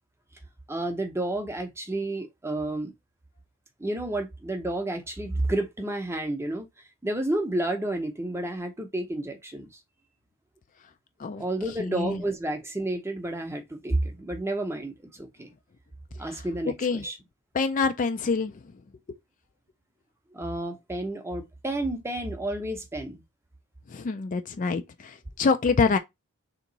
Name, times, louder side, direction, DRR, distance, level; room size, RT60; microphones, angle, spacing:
voice 1, 0.7-2.9 3.8-6.7 7.0-9.7 11.4-14.9 15.2-15.5 16.2-17.2 20.3-23.2, right 1 dB, 10° right, 0.7 m, -30 dB
voice 2, 11.8-12.2 16.8-17.0 17.5-18.5 23.9-26.0, left 4 dB, 35° left, 0.4 m, -26 dB
3.5 x 2.9 x 3.9 m
head